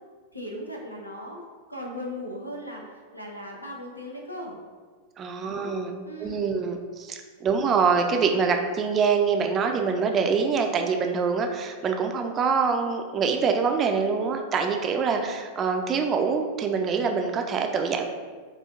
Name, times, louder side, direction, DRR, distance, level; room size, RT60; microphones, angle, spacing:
voice 1, 0.3-1.4 1.7-4.6 5.4-5.8 6.0-6.5, equal, 90° left, -1 dB, 0.5 m, -38 dB
voice 2, 5.2-18.1, right 5 dB, 25° right, 4 dB, 0.3 m, -25 dB
4.1 x 2.4 x 2.4 m, 1.5 s
figure-of-eight pair, 90°, 0 cm